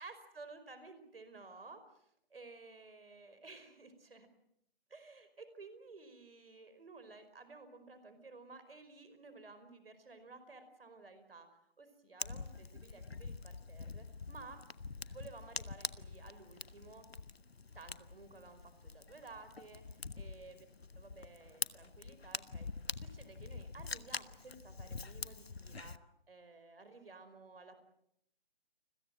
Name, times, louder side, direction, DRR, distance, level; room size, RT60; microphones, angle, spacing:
voice 1, 0.0-4.3 4.9-14.6 15.1-17.1 17.7-20.7 21.0-22.7 22.9-26.0 26.3-27.8, right 3 dB, 70° right, 10 dB, 5.1 m, -54 dB
Fire, 12.2-26.0, left 4 dB, 80° left, 1.2 m, -45 dB
30.0 x 21.5 x 7.7 m, 0.74 s
figure-of-eight pair, 140°, 31 cm